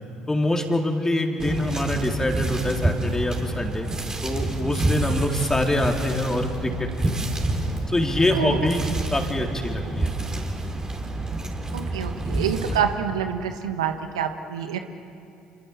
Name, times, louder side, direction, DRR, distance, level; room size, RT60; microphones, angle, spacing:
voice 1, 0.3-3.9 4.2-7.1 7.9-8.8 9.1-10.5, left 1 dB, 15° left, 2 dB, 3.8 m, -25 dB
sound 1, 1.4-12.8, right 2 dB, 20° right, 4.3 m, -28 dB
voice 2, 11.7-14.8, right 8 dB, 85° right, 7 dB, 1.5 m, -27 dB
28.0 x 25.0 x 7.4 m, 2.6 s
hypercardioid pair, 60°, 3 cm